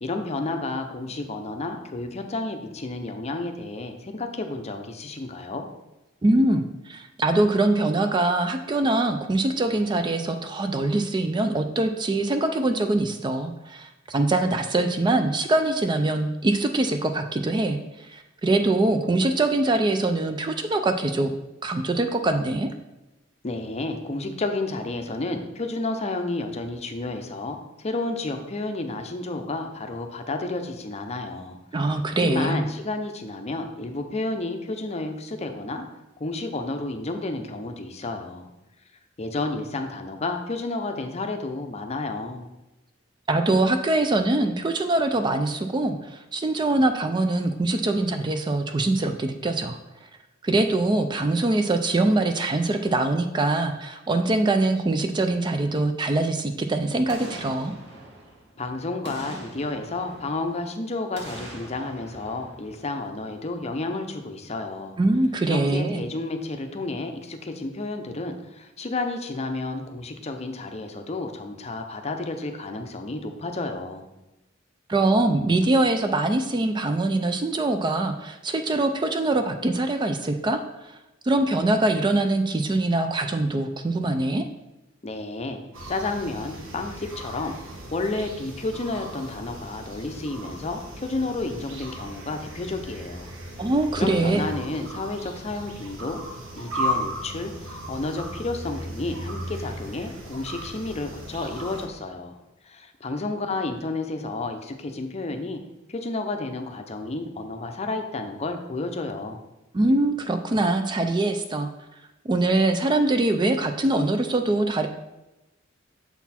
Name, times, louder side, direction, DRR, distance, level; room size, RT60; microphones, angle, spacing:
voice 1, 0.0-5.7 23.4-35.8 36.2-38.5 39.2-42.5 58.6-65.0 65.5-74.1 85.0-85.6 85.9-87.5 87.9-93.3 94.0-96.2 96.6-102.3 102.6-105.6 105.9-109.4, left 2 dB, 35° left, 6 dB, 0.6 m, -31 dB
voice 2, 6.2-21.3 21.6-22.7 31.7-32.7 43.3-49.8 50.4-57.7 65.0-66.0 74.9-81.0 81.2-84.4 93.6-94.4 109.7-111.7 112.2-114.9, right 2 dB, 25° right, 7 dB, 0.4 m, -23 dB
Boom, 57.1-58.6 59.0-60.7 61.1-63.4 63.7-63.8, right 1 dB, 60° right, 1.6 m, -43 dB
Sound of Jungle, 85.7-101.9, equal, 90° right, 1.2 m, -36 dB
7.0 x 4.0 x 4.3 m, 0.98 s
head